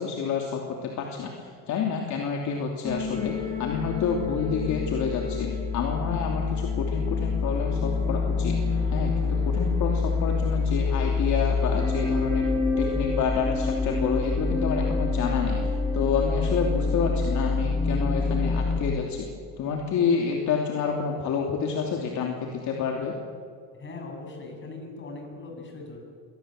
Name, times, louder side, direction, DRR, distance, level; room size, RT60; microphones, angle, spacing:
voice 1, 0.0-12.4 12.8-19.3 19.6-23.1, left 6 dB, 55° left, 1 dB, 3.0 m, -29 dB
sound 1, 2.8-18.8, left 4 dB, 10° left, 6.2 m, -26 dB
voice 2, 23.7-26.0, left 3 dB, 30° left, 1 dB, 7.2 m, -40 dB
23.5 x 18.0 x 7.8 m, 2.2 s
cardioid pair, 120°, 36 cm